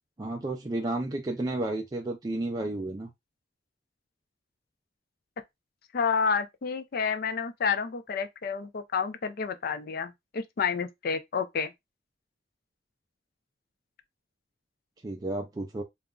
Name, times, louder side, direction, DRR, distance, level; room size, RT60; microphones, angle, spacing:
voice 1, 0.2-3.1 15.0-15.8, right 2 dB, 20° right, 0.3 m, -32 dB
voice 2, 5.9-11.7, left 6 dB, 55° left, 0.4 m, -29 dB
2.3 x 2.1 x 3.6 m
head